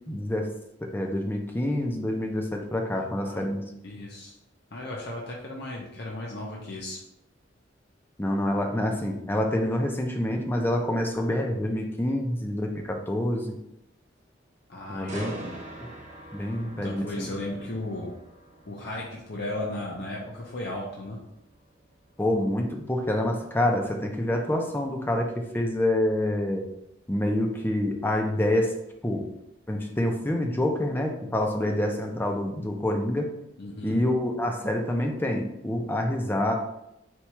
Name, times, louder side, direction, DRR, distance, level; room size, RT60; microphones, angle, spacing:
voice 1, 0.1-0.5 0.8-3.6 8.2-13.6 14.9-15.3 16.3-17.3 22.2-26.7 27.1-28.8 29.0-29.3 29.7-33.3 33.8-36.5, left 1 dB, 10° left, 2 dB, 0.5 m, -27 dB
voice 2, 3.0-3.5 3.8-4.3 4.7-7.0 14.7-15.5 16.7-18.1 18.7-21.2 33.6-34.0, left 1 dB, 60° left, -3 dB, 0.7 m, -36 dB
sound 1, 15.1-28.9 29.3-29.6, right 2 dB, 40° right, 0.9 m, -47 dB
4.4 x 2.4 x 4.2 m, 0.83 s
head